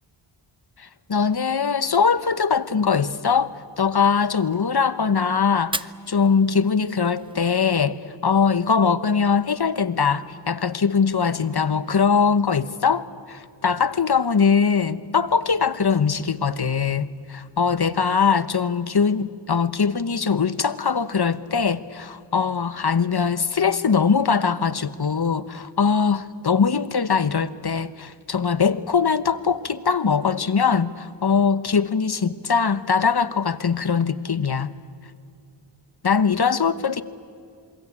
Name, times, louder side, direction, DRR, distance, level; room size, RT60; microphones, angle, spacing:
voice 1, 0.8-34.7 36.0-37.0, left 6 dB, 50° left, 14 dB, 1.1 m, -21 dB
Fire, 5.6-7.6, right 2 dB, 10° right, 0.6 m, -35 dB
27.0 x 23.0 x 8.6 m, 2.3 s
wide cardioid pair, 50°, 49 cm